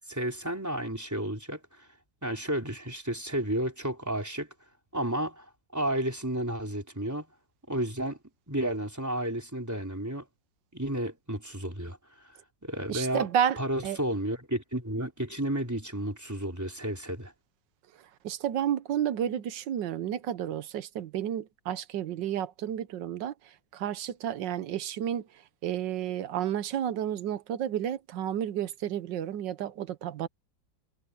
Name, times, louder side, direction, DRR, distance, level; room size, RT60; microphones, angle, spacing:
voice 1, 0.1-1.9 2.2-4.5 4.9-7.3 7.7-8.2 8.5-10.2 10.7-12.0 12.6-13.3 13.6-17.3, right 1 dB, 10° right, 4.0 m, -32 dB
voice 2, 12.9-14.0 17.9-30.3, right 10 dB, 75° right, 1.5 m, -31 dB
omnidirectional pair, 2.0 m